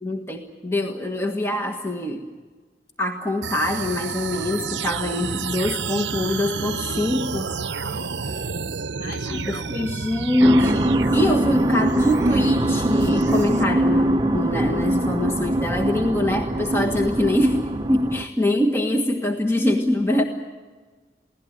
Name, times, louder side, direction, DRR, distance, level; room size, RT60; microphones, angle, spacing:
voice 1, 0.0-2.3 3.0-7.5 9.3-20.2, left 1 dB, 15° left, 3 dB, 1.5 m, -23 dB
sound 1, 3.4-13.6, right 5 dB, 80° right, 0.8 m, -31 dB
voice 2, 7.8-8.6 8.9-9.7, left 1 dB, 55° left, 2 dB, 4.7 m, -40 dB
sound 2, 10.4-18.2, right 1 dB, 20° right, 0.8 m, -22 dB
23.5 x 17.0 x 9.9 m, 1.4 s
head